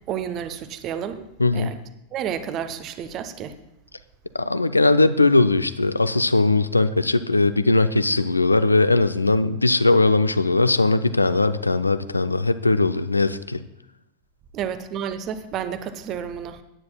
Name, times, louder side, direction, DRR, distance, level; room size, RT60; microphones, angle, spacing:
voice 1, 0.1-1.3 1.5-1.8 2.1-3.6 14.5-16.6, right 8 dB, 35° right, 12 dB, 0.7 m, -30 dB
voice 2, 1.4-1.7 4.3-13.6, left 3 dB, 80° left, 13 dB, 0.4 m, -19 dB
16.5 x 9.5 x 2.3 m, 0.91 s
figure-of-eight pair, 90°, 0 cm